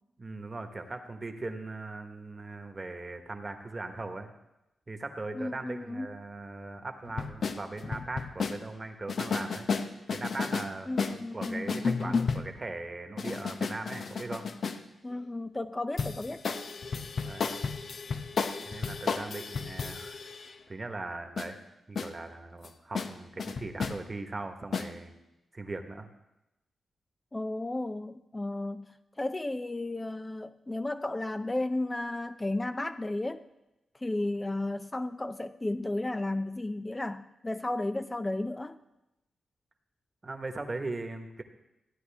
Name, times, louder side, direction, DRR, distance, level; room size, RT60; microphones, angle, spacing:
voice 1, 0.2-4.3 4.9-9.7 10.1-14.5 17.2-17.5 18.6-20.2 20.7-21.6 21.9-25.1 25.5-26.1 40.2-41.4, right 2 dB, 35° right, 6 dB, 1.4 m, -39 dB
voice 2, 5.3-6.1 10.9-12.1 15.0-16.4 27.3-28.8 29.2-33.4 34.0-38.8, left 2 dB, 25° left, 9 dB, 0.5 m, -33 dB
sound 1, 7.1-8.6 9.1-10.7 11.0-12.6 13.2-14.8 16.0-20.5 21.4-21.5 22.0-22.1 22.6-22.7 22.9-23.1 23.4-24.0 24.7-24.9, left 5 dB, 65° left, 0.8 m, -33 dB
14.5 x 9.3 x 3.5 m, 0.93 s
supercardioid pair, 45°, 0 cm